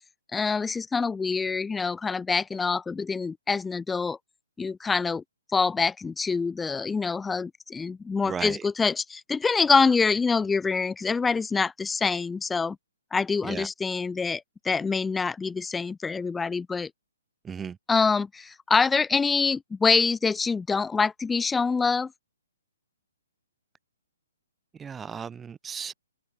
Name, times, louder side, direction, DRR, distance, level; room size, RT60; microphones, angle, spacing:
voice 1, 0.3-4.2 4.6-5.2 5.5-12.8 13.1-16.9 17.9-22.1, left 4 dB, 10° left, 2.2 m, -25 dB
voice 2, 8.2-8.6 13.5-13.7 17.4-17.7 24.8-25.9, right 7 dB, 10° right, 1.4 m, -35 dB
figure-of-eight pair, 130°, 0 cm